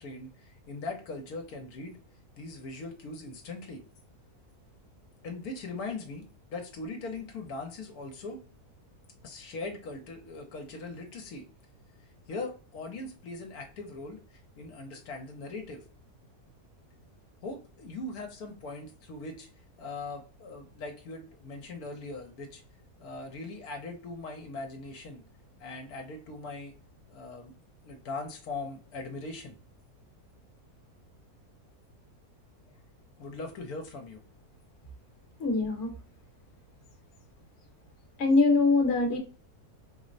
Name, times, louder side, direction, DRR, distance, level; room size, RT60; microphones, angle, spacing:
voice 1, 0.0-2.0 2.4-3.8 5.2-8.4 9.2-11.4 12.3-15.8 17.4-19.5 19.8-22.6 23.0-25.2 25.6-26.7 27.1-27.5 27.8-29.6 33.2-34.2, left 3 dB, 80° left, 3 dB, 1.2 m, -40 dB
voice 2, 35.4-35.9 38.2-39.2, left 3 dB, 50° left, 2 dB, 1.1 m, -23 dB
4.3 x 2.0 x 2.5 m, 0.38 s
omnidirectional pair, 1.6 m